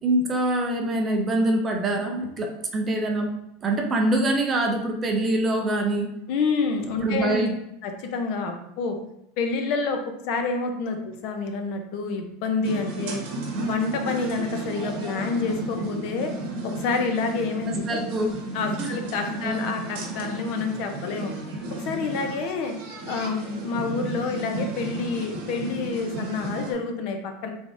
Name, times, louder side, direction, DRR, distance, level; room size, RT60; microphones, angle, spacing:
voice 1, 0.0-3.3 3.6-6.1 7.0-7.5 17.7-18.3 18.8-18.9 19.4-19.7, right 1 dB, 20° right, 2 dB, 0.4 m, -24 dB
voice 2, 6.3-7.4 7.8-9.0 9.4-10.0 10.3-13.2 13.7-16.3 16.6-18.0 18.5-21.3 21.8-22.8 23.1-27.5, left 4 dB, 50° left, 5 dB, 0.5 m, -28 dB
sound 1, 12.6-26.7, right 2 dB, 70° right, 0.8 m, -33 dB
3.8 x 3.3 x 2.5 m, 0.81 s
supercardioid pair, 165°, 0 cm